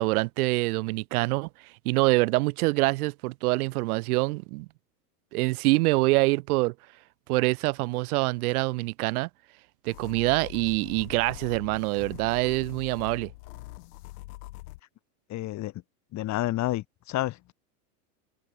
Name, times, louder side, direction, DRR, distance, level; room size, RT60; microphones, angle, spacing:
voice 1, 0.0-1.5 1.8-4.7 5.3-6.7 7.3-9.3 9.8-13.3, right 22 dB, 60° right, 6.7 m, -25 dB
sound 1, 9.9-14.8, left 20 dB, 65° left, 7.2 m, -43 dB
voice 2, 15.3-15.7 16.1-17.5, left 16 dB, 35° left, 2.6 m, -30 dB
supercardioid pair, 140°, 48 cm